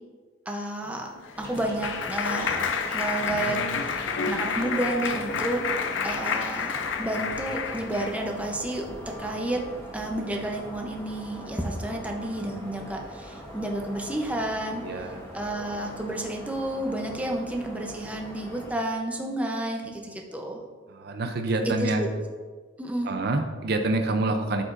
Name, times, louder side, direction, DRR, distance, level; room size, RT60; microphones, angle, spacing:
voice 1, 0.5-1.1 1.4-2.6 2.9-5.6 6.0-6.7 7.0-9.6 9.9-14.8 15.3-20.6 21.6-22.1 22.8-23.1, right 1 dB, 5° right, 1 dB, 0.7 m, -31 dB
Clapping, 1.0-8.3, left 5 dB, 75° left, 0.5 m, -29 dB
sound 1, 1.3-18.7, equal, 15° left, 1.4 m, -41 dB
voice 2, 14.8-15.2 20.9-22.0 23.0-24.6, right 2 dB, 55° right, 6 dB, 0.5 m, -27 dB
12.5 x 5.0 x 2.6 m, 1.5 s
head